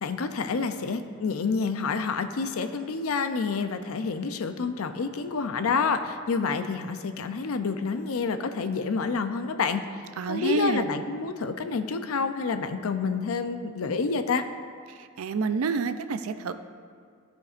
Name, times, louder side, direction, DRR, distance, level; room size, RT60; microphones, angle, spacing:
voice 1, 0.0-9.8 10.3-14.4, left 5 dB, 75° left, 8 dB, 0.5 m, -28 dB
voice 2, 10.2-10.9 15.0-16.5, right 4 dB, 75° right, 10 dB, 0.4 m, -28 dB
15.0 x 5.3 x 2.5 m, 2.1 s
head